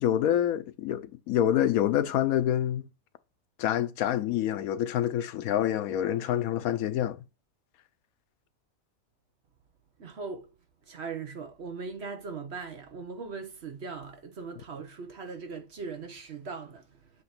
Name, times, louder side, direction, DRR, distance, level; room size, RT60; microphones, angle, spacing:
voice 1, 0.0-2.8 3.6-7.2, left 11 dB, 85° left, 1.1 m, -27 dB
voice 2, 10.0-10.5 10.9-17.0, right 5 dB, 55° right, 1.2 m, -39 dB
8.0 x 2.9 x 5.9 m
omnidirectional pair, 1.4 m